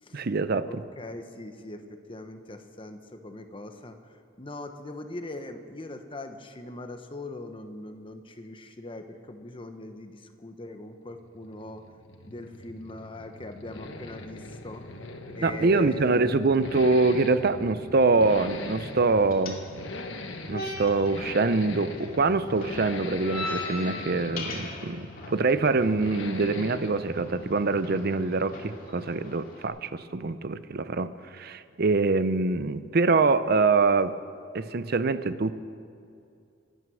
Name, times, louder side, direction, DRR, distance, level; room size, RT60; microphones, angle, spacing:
voice 1, 0.1-0.8 15.4-19.6 20.5-34.1 34.5-35.5, right 3 dB, 55° right, 13 dB, 0.6 m, -24 dB
voice 2, 0.7-11.8 12.2-14.8 15.3-16.2, left 1 dB, 30° left, 7 dB, 1.0 m, -41 dB
sound 1, 11.1-29.1, left 2 dB, 80° left, 1.3 m, -41 dB
sound 2, 18.2-29.6, left 1 dB, 50° left, 2.4 m, -41 dB
25.0 x 9.3 x 6.3 m, 2.4 s
head